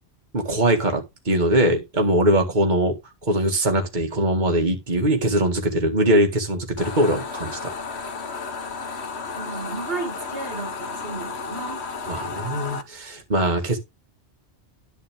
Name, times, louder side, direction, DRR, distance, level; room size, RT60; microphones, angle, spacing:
voice 1, 0.3-2.9 3.2-7.6 12.1-13.8, right 1 dB, 40° right, 2.1 m, -21 dB
sound 1, 6.8-12.8, left 4 dB, 70° left, 1.5 m, -33 dB
voice 2, 9.3-11.8, right 3 dB, 55° right, 2.1 m, -33 dB
10.5 x 7.2 x 3.6 m
omnidirectional pair, 1.2 m